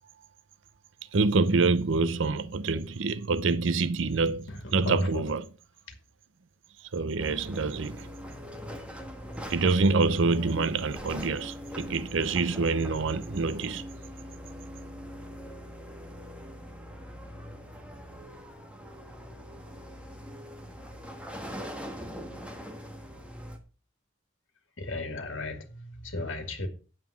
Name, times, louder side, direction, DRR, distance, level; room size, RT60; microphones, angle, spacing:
voice 1, 1.1-5.4 6.9-8.1 9.5-13.8, right 3 dB, 65° right, 0.6 m, -26 dB
voice 2, 4.5-5.3 24.8-26.7, left 2 dB, 65° left, 2.0 m, -34 dB
sound 1, 7.2-23.6, equal, 5° right, 1.5 m, -42 dB
9.3 x 7.4 x 5.7 m
head